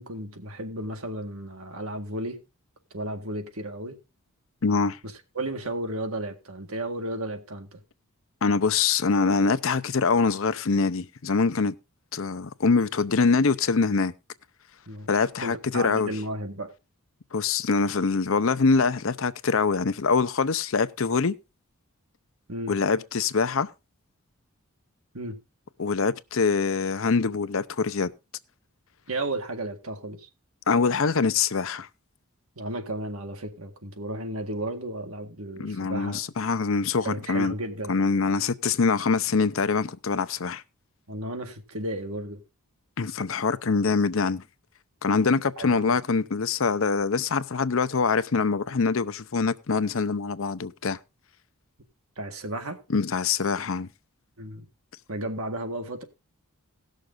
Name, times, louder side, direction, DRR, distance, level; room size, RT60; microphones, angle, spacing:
voice 1, 0.0-2.4 2.9-4.0 5.4-7.8 14.9-15.1 15.4-16.7 22.5-22.7 25.1-25.4 29.1-30.3 32.6-36.2 37.0-38.0 41.1-42.4 45.6-46.0 52.2-52.8 54.4-54.7 55.1-56.0, right 1 dB, 75° right, 1.8 m, -33 dB
voice 2, 4.6-5.0 8.4-11.7 12.1-14.1 15.1-16.1 17.3-21.4 22.7-23.7 25.8-28.1 30.7-31.9 35.6-37.5 37.9-40.6 43.0-44.4 45.0-51.0 52.9-53.9, left 4 dB, 65° left, 0.6 m, -24 dB
17.5 x 6.5 x 3.8 m
head